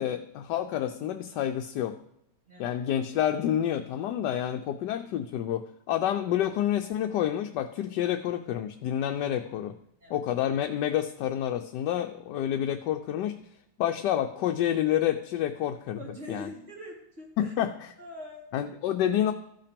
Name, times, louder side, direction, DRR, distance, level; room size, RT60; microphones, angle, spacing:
voice 1, 0.0-2.0 2.6-9.8 10.1-13.4 13.8-16.0 16.3-16.5 17.4-17.9 18.5-19.3, left 11 dB, 85° left, 6 dB, 1.2 m, -28 dB
voice 2, 2.5-2.8 10.0-10.3 16.0-17.5 18.0-18.5, left 1 dB, 45° right, -4 dB, 3.6 m, -43 dB
13.5 x 5.7 x 5.1 m, 0.77 s
omnidirectional pair, 1.8 m